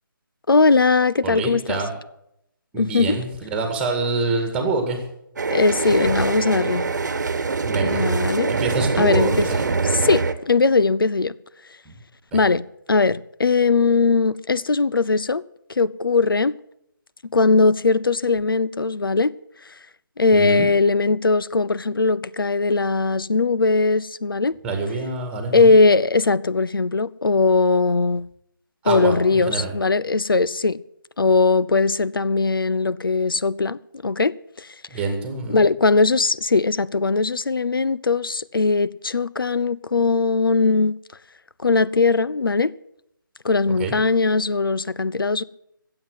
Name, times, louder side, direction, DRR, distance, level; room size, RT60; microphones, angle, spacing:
voice 1, 0.5-1.8 2.8-3.2 5.5-6.8 7.8-8.5 9.0-9.5 9.8-11.3 12.3-15.4 15.7-16.5 17.3-19.3 20.2-24.6 25.5-28.2 28.8-30.8 31.2-34.7 35.5-40.9 41.6-42.7 43.4-45.4, left 3 dB, 80° left, 0.6 m, -19 dB
voice 2, 1.2-1.9 2.7-5.0 7.6-8.0 8.5-9.7 11.9-12.0 12.3-12.4 20.3-20.7 24.6-25.7 28.8-29.7 34.9-35.6 43.8-43.9, right 3 dB, 10° right, 1.9 m, -26 dB
sound 1, 5.4-10.3, right 4 dB, 55° right, 1.2 m, -23 dB
14.5 x 7.9 x 8.0 m
figure-of-eight pair, 160°, 12 cm